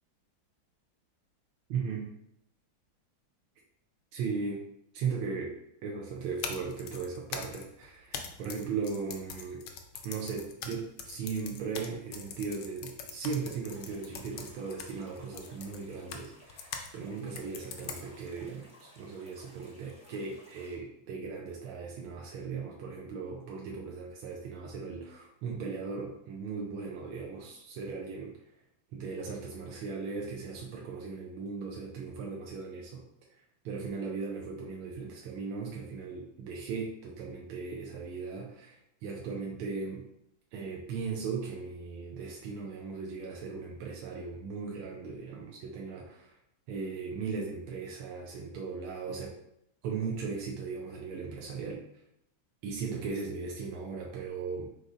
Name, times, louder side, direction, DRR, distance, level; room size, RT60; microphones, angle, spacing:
voice 1, 1.7-2.1 4.1-4.6 4.9-5.5 5.8-9.6 10.0-28.3 28.9-33.0 33.6-40.0 40.5-46.3 46.7-49.3 49.8-51.8 52.6-54.7, right 5 dB, 85° right, -1 dB, 1.5 m, -37 dB
sound 1, 6.2-16.9 17.4-18.3, left 6 dB, 70° left, 1.1 m, -43 dB
sound 2, 13.7-20.8, left 1 dB, 10° right, 0.4 m, -58 dB
5.0 x 3.8 x 2.5 m, 0.78 s
omnidirectional pair, 2.2 m